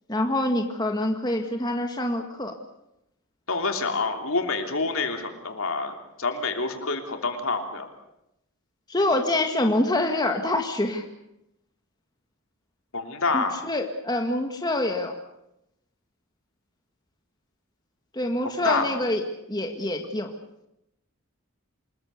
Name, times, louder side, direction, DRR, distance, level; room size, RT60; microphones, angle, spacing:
voice 1, 0.1-2.5 8.9-11.1 13.3-15.1 18.1-20.3, left 1 dB, 20° left, 3 dB, 1.9 m, -26 dB
voice 2, 3.5-7.9 12.9-13.6 18.4-18.9, left 3 dB, 65° left, 5 dB, 3.2 m, -27 dB
27.5 x 21.0 x 6.8 m, 0.83 s
head